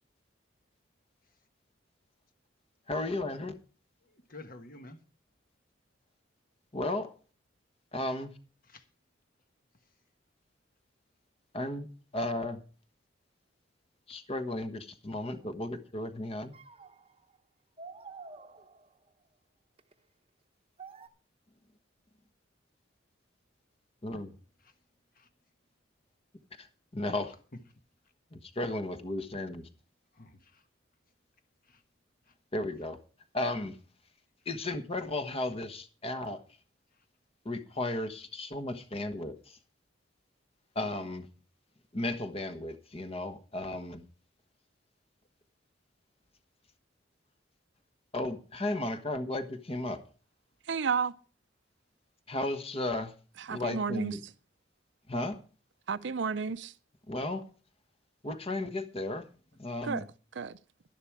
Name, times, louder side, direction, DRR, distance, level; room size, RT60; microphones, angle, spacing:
voice 1, 2.9-3.5 6.7-7.1 7.9-8.3 11.5-11.9 12.1-12.6 14.1-16.5 24.0-24.3 26.6-26.7 26.9-27.3 28.3-29.7 32.5-33.0 33.3-33.8 34.4-36.4 37.4-39.6 40.7-41.3 41.9-44.0 48.1-50.0 52.3-53.1 53.5-54.2 55.1-55.4 57.1-57.4 58.2-59.3 59.6-60.1, left 2 dB, 30° left, 1.3 m, -34 dB
voice 2, 4.0-5.0 8.6-8.9 24.1-24.3 24.6-24.7 25.1-25.3 30.1-30.7 31.6-31.8 32.2-32.3 36.9-37.1, left 2 dB, 50° left, 1.5 m, -52 dB
sound 1, 15.3-15.5 16.5-17.4 17.8-19.1 19.8-19.9 20.8-21.1, right 4 dB, 30° right, 0.9 m, -49 dB
voice 3, 50.7-51.1 53.4-54.2 55.9-56.7 59.8-60.0 60.3-60.6, right 5 dB, 65° right, 0.6 m, -32 dB
11.5 x 11.0 x 4.7 m
head